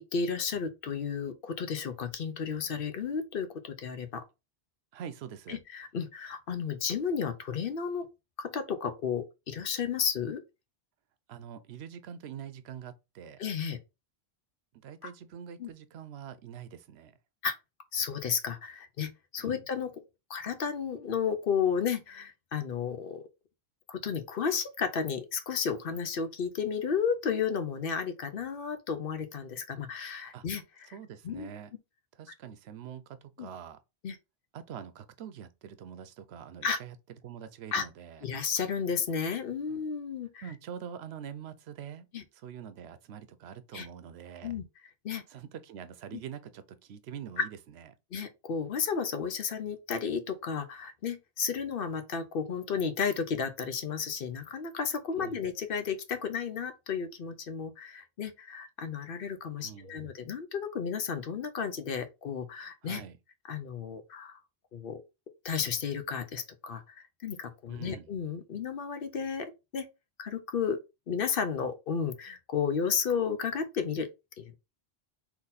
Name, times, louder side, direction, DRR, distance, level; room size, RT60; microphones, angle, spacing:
voice 1, 0.0-4.2 5.5-8.1 8.4-10.4 13.4-13.8 15.0-15.1 15.6-15.7 17.4-17.6 17.9-19.9 20.3-23.2 23.9-30.6 31.2-31.5 33.4-33.5 34.0-34.2 36.6-36.8 37.7-37.8 38.2-40.4 42.1-42.2 43.7-43.9 44.4-44.6 45.0-45.2 46.1-46.2 47.4-47.5 48.1-63.0 63.5-64.4 64.7-65.0 65.4-69.9 70.2-70.8 71.1-74.1 74.4-74.6, left 6 dB, 65° left, 0.8 m, -33 dB
voice 2, 4.9-5.6 11.3-13.4 14.7-17.2 19.4-19.7 30.3-30.4 30.9-31.7 32.1-33.8 34.5-36.9 37.2-38.3 39.7-39.8 40.4-42.1 42.3-44.6 45.3-47.9 55.1-55.4 59.6-60.0 62.8-63.2 67.7-68.1, right 8 dB, 85° right, 0.9 m, -44 dB
3.9 x 2.9 x 4.0 m
omnidirectional pair, 1.0 m